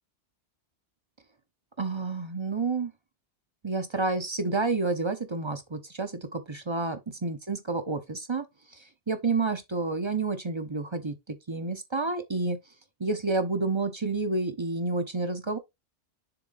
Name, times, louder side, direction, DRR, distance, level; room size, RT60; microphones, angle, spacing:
voice 1, 1.8-2.9 3.6-8.4 9.1-12.6 13.0-15.6, right 3 dB, 25° right, 0.9 m, -29 dB
6.9 x 3.7 x 3.9 m
omnidirectional pair, 1.2 m